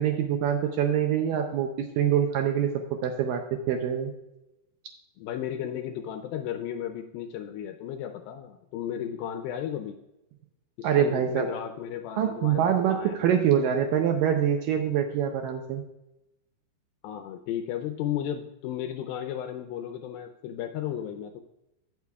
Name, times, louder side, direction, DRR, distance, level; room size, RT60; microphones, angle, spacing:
voice 1, 0.0-4.1 10.8-11.5 12.2-15.8, right 9 dB, 80° right, 4 dB, 2.1 m, -25 dB
voice 2, 5.2-10.0 10.8-13.4 17.0-21.4, left 10 dB, 80° left, 7 dB, 2.3 m, -34 dB
15.5 x 6.1 x 2.3 m, 0.92 s
omnidirectional pair, 4.5 m